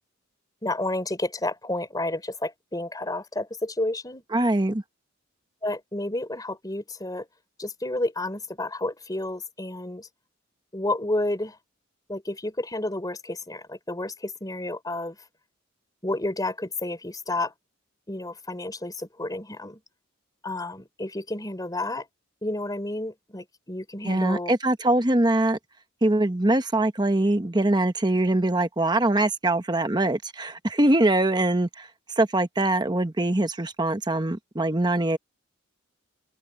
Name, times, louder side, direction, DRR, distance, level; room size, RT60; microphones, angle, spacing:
voice 1, 0.6-4.2 5.6-7.3 7.6-10.1 10.7-11.6 12.1-15.2 16.0-17.5 18.1-19.8 20.4-22.1 22.4-24.5, left 2 dB, 20° left, 3.8 m, -31 dB
voice 2, 4.3-4.8 24.0-25.6 26.0-31.9 32.2-35.2, right 1 dB, 20° right, 1.1 m, -23 dB
open air
head